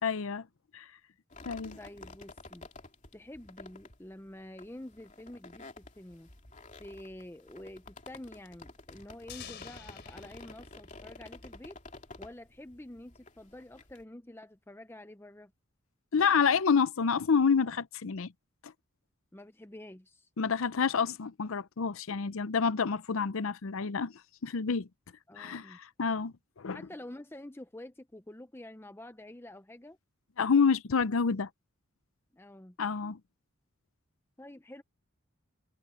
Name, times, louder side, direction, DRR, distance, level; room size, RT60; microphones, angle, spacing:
voice 1, 0.0-0.5 0.7-0.9 1.5-1.8 16.1-18.3 18.6-18.7 20.4-24.1 24.4-24.9 25.4-26.8 30.4-31.5 32.8-33.2, left 5 dB, 75° left, 0.6 m, -28 dB
Obi Creak Loud, 1.3-14.0, left 3 dB, 35° left, 2.9 m, -51 dB
voice 2, 1.8-2.7 3.1-6.3 6.8-11.8 12.2-15.5 19.3-20.3 25.3-25.8 26.7-30.0 32.3-32.8 34.4-34.8, left 1 dB, 10° left, 0.6 m, -48 dB
sound 1, 9.3-12.1, left 7 dB, 50° left, 4.3 m, -50 dB
head